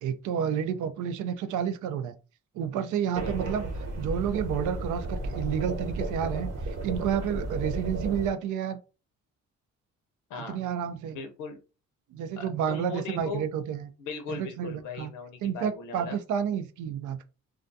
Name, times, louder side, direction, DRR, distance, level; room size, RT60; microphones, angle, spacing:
voice 1, 0.0-2.2 2.6-3.7 4.0-8.8 10.5-11.2 12.1-13.9 14.3-15.1 15.4-17.2, right 8 dB, 80° right, 0.5 m, -30 dB
sound 1, 3.1-8.3, right 2 dB, 55° right, 0.8 m, -33 dB
voice 2, 11.1-11.6 12.4-13.5 14.0-16.2, left 3 dB, 90° left, 0.6 m, -38 dB
2.3 x 2.3 x 2.5 m
cardioid pair, 90°, 30 cm